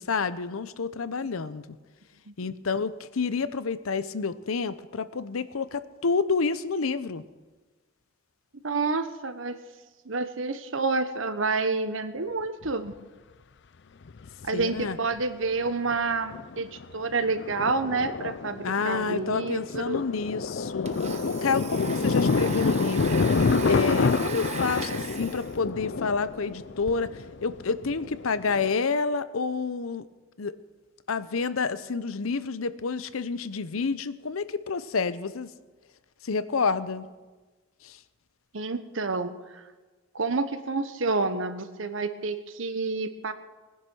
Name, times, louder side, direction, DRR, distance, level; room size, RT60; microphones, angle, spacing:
voice 1, 0.0-1.7 2.4-7.2 14.5-15.0 18.6-23.2 23.7-30.1 30.4-30.5 31.1-35.5 36.2-37.0 37.8-38.0, left 4 dB, 90° left, 14 dB, 0.7 m, -29 dB
voice 2, 8.6-9.6 10.0-12.9 14.4-20.1 38.5-39.6 40.1-43.3, right 3 dB, 70° right, 10 dB, 1.1 m, -29 dB
Thunder, 12.6-12.7 14.1-14.9 15.1-15.2 15.7-15.9 16.3-28.7, left 4 dB, 60° left, 0.5 m, -28 dB
Domestic sounds home sounds, 19.9-20.0 20.3-26.9, right 5 dB, 35° right, 1.1 m, -39 dB
19.5 x 10.5 x 6.3 m, 1.3 s
head